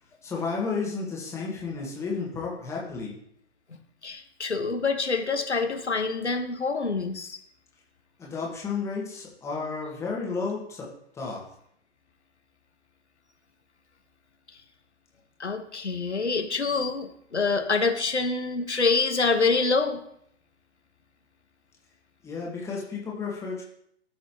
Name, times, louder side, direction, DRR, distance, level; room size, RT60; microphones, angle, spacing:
voice 1, 0.2-3.2 8.2-10.9 11.1-11.4 22.2-23.6, left 4 dB, 10° left, -3 dB, 1.7 m, -32 dB
voice 2, 4.0-7.4 15.4-20.0, left 4 dB, 80° left, 5 dB, 1.4 m, -26 dB
13.5 x 6.2 x 3.0 m, 0.72 s
figure-of-eight pair, 130°, 33 cm